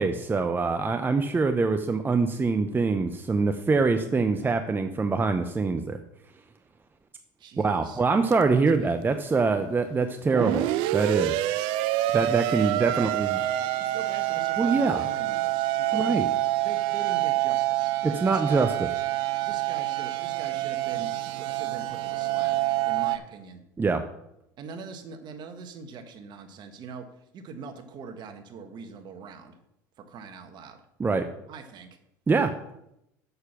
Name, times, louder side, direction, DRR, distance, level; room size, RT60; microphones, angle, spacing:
voice 1, 0.0-6.0 7.6-11.5 12.1-13.4 14.6-15.1 15.9-16.3 18.0-18.7 23.8-24.0 31.0-31.3 32.3-32.5, right 4 dB, 20° right, 7 dB, 0.7 m, -24 dB
voice 2, 7.4-8.0 8.5-9.0 12.7-13.1 13.8-16.2 16.6-18.6 19.4-21.1 21.4-23.6 24.6-27.0 27.3-29.6 30.1-30.8 31.5-31.9, right 5 dB, 50° right, 6 dB, 1.5 m, -42 dB
sound 1, 8.3-8.4 10.3-23.2, right 16 dB, 65° right, 0.5 m, -27 dB
6.9 x 6.7 x 5.9 m, 0.80 s
hypercardioid pair, 80°, 10 cm